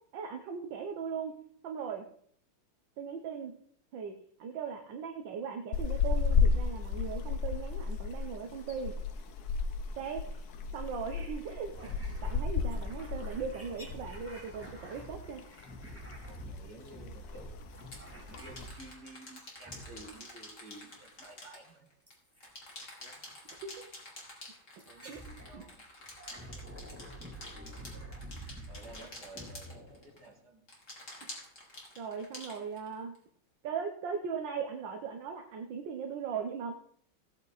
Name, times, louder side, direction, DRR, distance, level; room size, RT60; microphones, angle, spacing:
voice 1, 0.1-1.3 1.6-2.0 3.0-3.5 3.9-4.1 4.4-8.9 10.0-10.4 10.7-11.7 12.2-15.4 23.6-23.9 25.0-25.2 25.5-25.6 32.0-33.1 33.6-36.7, right 6 dB, 80° right, 4 dB, 1.8 m, -38 dB
sound 1, 5.7-14.2 14.5-14.7 15.1-16.0 16.3-16.6 16.9-17.0 17.2-17.6 18.2-18.7, left 5 dB, 60° left, 1.4 m, -32 dB
sound 2, 11.7-19.2 19.6-20.4 22.1-22.5 23.5-23.6 24.8-25.6 26.0-30.4, right 1 dB, 5° right, 2.9 m, -48 dB
voice 2, 16.3-17.5 18.2-21.9 23.0-23.3 24.8-25.8 26.3-27.4 28.7-30.7, right 2 dB, 60° right, 0 dB, 3.3 m, -53 dB
sound 3, 16.8-16.9 17.7-22.1 22.4-30.3 30.7-33.2, left 2 dB, 40° left, 3.6 m, -48 dB
17.5 x 8.7 x 4.0 m, 0.63 s
omnidirectional pair, 2.0 m